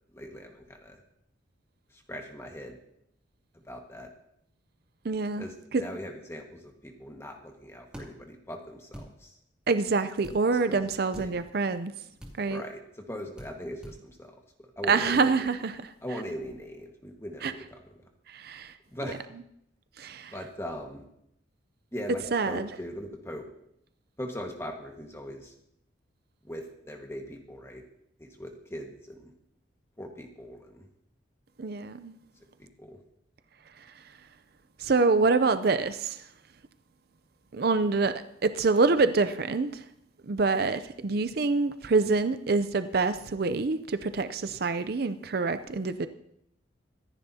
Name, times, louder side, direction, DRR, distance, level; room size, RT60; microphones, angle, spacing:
voice 1, 0.1-1.0 2.1-2.8 3.6-4.1 5.4-9.3 10.7-10.9 11.2-11.3 12.5-14.3 14.8-15.5 16.0-17.8 18.9-19.2 20.3-21.0 21.9-23.5 24.2-25.5 26.4-27.8 28.2-29.3 30.0-30.9 32.6-33.0, equal, 15° left, 2 dB, 1.5 m, -40 dB
voice 2, 5.0-5.8 9.7-11.9 12.4-12.6 14.9-15.9 17.4-17.5 18.3-18.8 20.0-20.3 22.3-22.7 31.6-32.1 33.8-34.0 34.8-36.3 37.5-38.1 38.4-39.8 40.2-46.1, right 4 dB, 50° right, 11 dB, 0.5 m, -26 dB
sound 1, 7.9-8.1 8.9-9.1 10.2-10.4 11.1-11.3 12.2-12.4 13.4-13.5 13.8-14.0, equal, 5° right, 2.4 m, -43 dB
24.5 x 10.5 x 2.8 m, 0.76 s
head